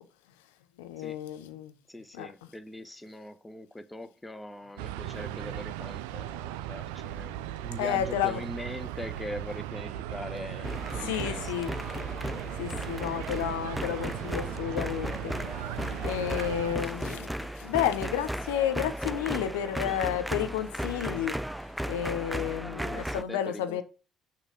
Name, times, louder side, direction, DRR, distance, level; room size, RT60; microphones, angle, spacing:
voice 1, 0.8-1.7 2.1-2.5 7.8-8.4 11.0-11.7 12.5-15.3 16.0-21.3 21.9-23.8, left 10 dB, 80° left, 0.7 m, -31 dB
voice 2, 1.9-11.5 22.6-23.8, left 1 dB, 10° left, 0.9 m, -42 dB
sound 1, 4.8-16.8, right 12 dB, 80° right, 0.3 m, -38 dB
sound 2, 10.6-23.2, equal, 5° right, 0.5 m, -35 dB
6.6 x 3.1 x 4.9 m
hypercardioid pair, 55°, 0 cm